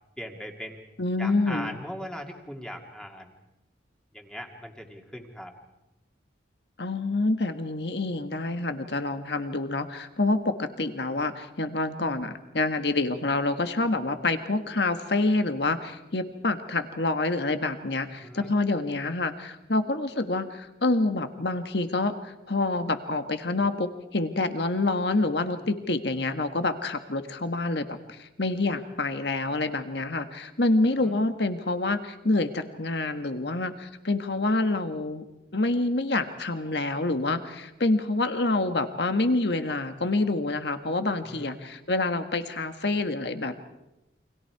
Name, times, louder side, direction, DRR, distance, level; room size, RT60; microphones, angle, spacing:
voice 1, 0.2-0.8 1.2-3.3 4.1-5.5 18.2-18.5 26.2-26.3 30.9-31.2 41.3-41.6, equal, 5° left, 2 dB, 2.3 m, -39 dB
voice 2, 1.0-1.8 6.8-35.2 35.5-43.6, left 2 dB, 65° left, 8 dB, 1.6 m, -27 dB
29.5 x 25.0 x 4.8 m, 0.92 s
head